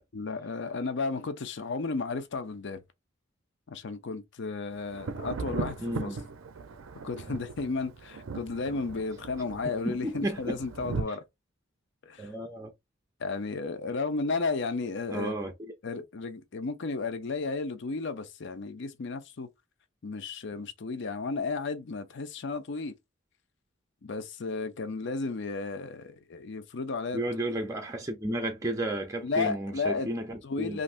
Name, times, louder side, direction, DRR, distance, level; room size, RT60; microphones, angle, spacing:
voice 1, 0.1-2.8 3.7-6.2 7.0-11.2 12.0-12.3 13.2-15.3 15.8-19.5 20.0-22.9 24.0-27.2 29.2-30.1 30.4-30.8, left 4 dB, 60° left, 0.5 m, -33 dB
Thunder, 4.9-11.0, right 4 dB, 75° right, 0.5 m, -38 dB
voice 2, 5.8-6.2 9.8-10.6 12.2-12.7 15.1-15.5 15.9-16.0 27.1-30.8, right 1 dB, 15° right, 0.5 m, -33 dB
3.2 x 2.5 x 2.4 m
head